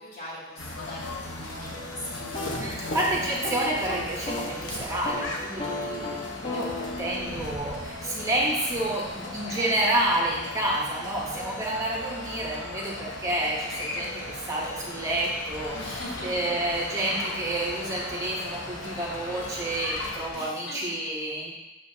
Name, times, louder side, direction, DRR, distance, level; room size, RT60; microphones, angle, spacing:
voice 1, 0.0-2.8 3.1-3.6 9.2-9.8 15.7-16.6 20.3-21.1, left 1 dB, 55° left, -6 dB, 2.5 m, -41 dB
sound 1, 0.6-20.3, left 2 dB, 90° left, 1.1 m, -38 dB
sound 2, 0.8-20.6, left 3 dB, 70° left, 0.7 m, -43 dB
sound 3, 2.2-4.6 4.9-5.3 5.6-9.4, left 2 dB, 30° left, 1.1 m, -36 dB
voice 2, 2.6-21.5, right 1 dB, 15° right, -4 dB, 1.1 m, -29 dB
7.2 x 6.6 x 2.8 m, 1.0 s
head